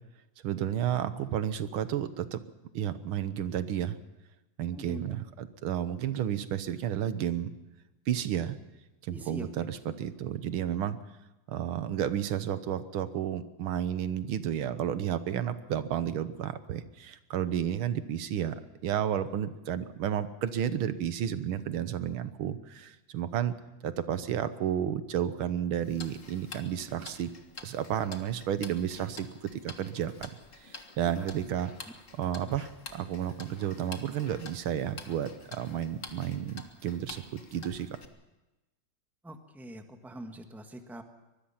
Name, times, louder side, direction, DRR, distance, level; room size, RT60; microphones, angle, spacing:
voice 1, 0.4-2.4 2.7-4.0 4.6-7.6 8.1-8.6 9.0-11.0 11.5-23.6 23.8-27.3 27.6-30.3 30.6-31.7 32.1-38.0, right 10 dB, 80° right, 12 dB, 1.8 m, -32 dB
voice 2, 4.7-5.2 9.1-9.5 31.1-31.3 39.2-41.0, right 1 dB, ahead, 5 dB, 1.3 m, -43 dB
Tick-tock, 25.8-38.1, left 4 dB, 40° left, 1.9 m, -48 dB
24.0 x 20.5 x 5.8 m, 1.0 s
omnidirectional pair, 2.3 m